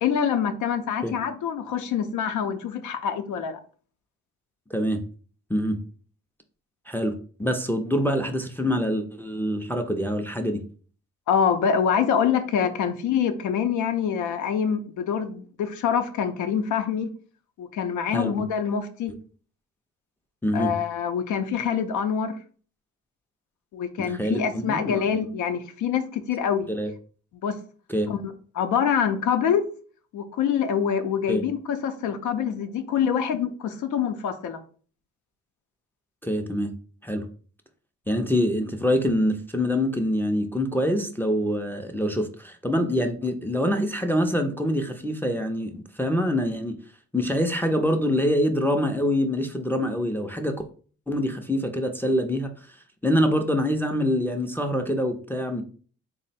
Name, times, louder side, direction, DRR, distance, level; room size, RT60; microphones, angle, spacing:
voice 1, 0.0-3.6 11.3-17.1 17.6-19.1 20.5-22.4 23.7-26.7 27.4-27.6 28.1-29.6 30.1-34.6, left 7 dB, 85° left, 0.5 m, -25 dB
voice 2, 4.7-5.0 5.5-5.8 6.9-10.6 18.1-18.4 20.4-20.7 24.0-24.9 26.7-26.9 27.9-28.1 31.3-31.4 36.2-36.7 37.0-37.3 38.1-46.8 47.1-50.6 51.1-52.5 53.0-55.6, equal, 5° left, 0.3 m, -25 dB
3.6 x 2.0 x 4.0 m
cardioid pair, 100°, 29 cm